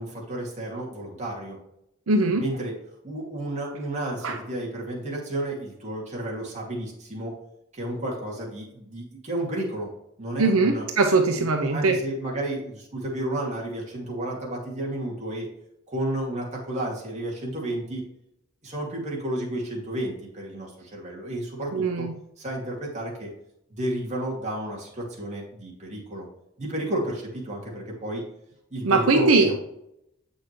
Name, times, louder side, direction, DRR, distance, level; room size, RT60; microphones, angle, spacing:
voice 1, 0.0-1.6 2.4-2.8 3.0-7.4 7.7-9.9 10.2-10.9 11.4-15.5 15.9-18.1 18.6-22.1 22.4-23.3 23.7-26.3 26.6-28.3 28.7-29.6, right 1 dB, 35° right, -3 dB, 2.5 m, -32 dB
voice 2, 2.1-2.4 4.2-4.4 10.4-12.0 21.7-22.1 28.8-29.6, right 3 dB, 80° right, 4 dB, 0.8 m, -21 dB
7.8 x 6.4 x 3.2 m, 0.81 s
head